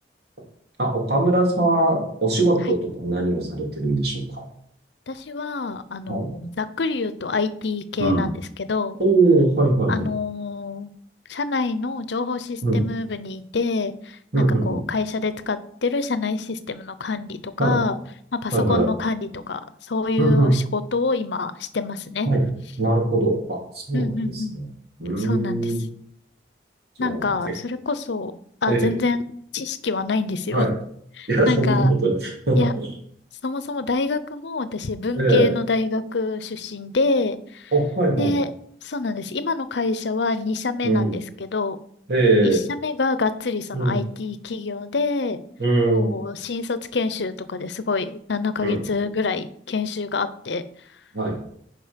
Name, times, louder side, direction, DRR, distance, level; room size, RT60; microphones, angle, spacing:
voice 1, 0.8-4.4 6.1-6.3 8.0-8.3 9.0-10.1 12.6-12.8 14.3-14.8 17.6-17.8 18.5-18.9 20.2-20.5 22.2-22.4 22.8-24.7 25.0-25.8 27.0-27.3 28.7-28.9 30.5-30.7 31.3-32.9 35.2-35.5 37.7-38.4 40.8-41.1 42.1-42.6 43.7-44.0 45.6-46.2 48.6-48.8 51.1-51.5, right 2 dB, 60° right, 0 dB, 2.9 m, -21 dB
voice 2, 5.1-9.0 9.9-10.9 11.3-18.0 18.3-22.3 23.9-24.6 25.2-25.7 27.0-28.3 28.6-29.2 29.5-30.7 31.2-31.9 32.6-32.7 33.4-37.7 38.2-38.5 38.8-41.8 42.4-45.4 45.9-50.6, left 3 dB, 80° left, 13 dB, 0.7 m, -26 dB
10.5 x 4.9 x 5.2 m, 0.66 s
head